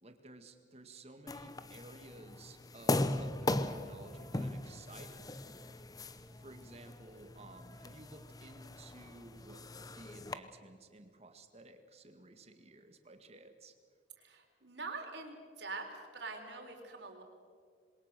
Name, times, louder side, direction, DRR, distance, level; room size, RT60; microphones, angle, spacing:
voice 1, 0.0-5.8 6.3-9.6 9.9-13.7, right 2 dB, 35° right, 7 dB, 1.9 m, -55 dB
sound 1, 1.3-10.3, left 2 dB, 20° left, 0.8 m, -39 dB
voice 2, 14.2-17.2, right 3 dB, 65° right, 3 dB, 4.0 m, -44 dB
27.0 x 22.0 x 6.8 m, 2.1 s
head